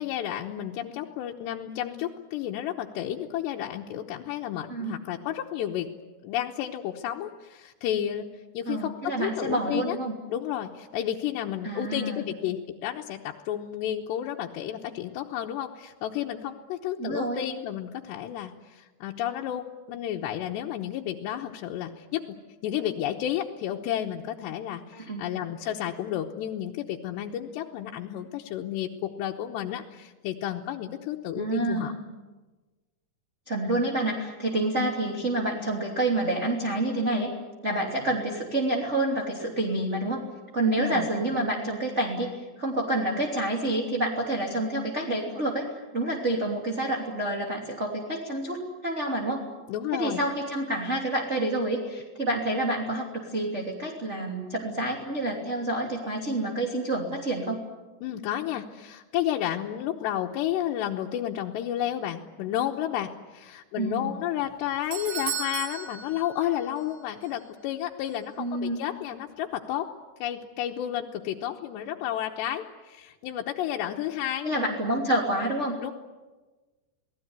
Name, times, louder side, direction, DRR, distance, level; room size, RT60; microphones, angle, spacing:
voice 1, 0.0-5.9 6.2-8.3 8.5-10.0 10.3-31.9 40.6-41.1 49.7-50.2 58.0-69.9 70.2-74.7 75.8-75.9, left 11 dB, 80° left, -1 dB, 3.2 m, -32 dB
voice 2, 8.7-10.2 11.6-12.3 17.0-17.4 24.9-25.2 31.4-32.0 33.5-37.3 37.6-40.2 40.5-42.3 42.6-45.6 45.9-49.5 49.9-57.6 63.8-64.1 68.4-68.9 74.4-75.8, right 1 dB, 20° right, -1 dB, 2.7 m, -28 dB
Doorbell, 64.4-67.0 67.2-67.3 68.1-68.2, right 6 dB, 80° right, 5.2 m, -35 dB
28.5 x 19.0 x 9.6 m, 1.2 s
omnidirectional pair, 5.1 m